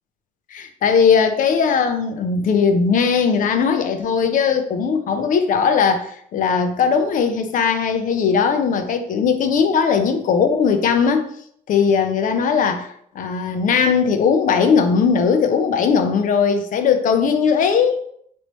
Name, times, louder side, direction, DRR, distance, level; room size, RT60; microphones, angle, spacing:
voice 1, 0.5-11.3 11.7-12.9 13.2-18.0, left 6 dB, 50° left, 0.4 m, -18 dB
3.0 x 2.9 x 3.0 m
cardioid pair, 110°, 17 cm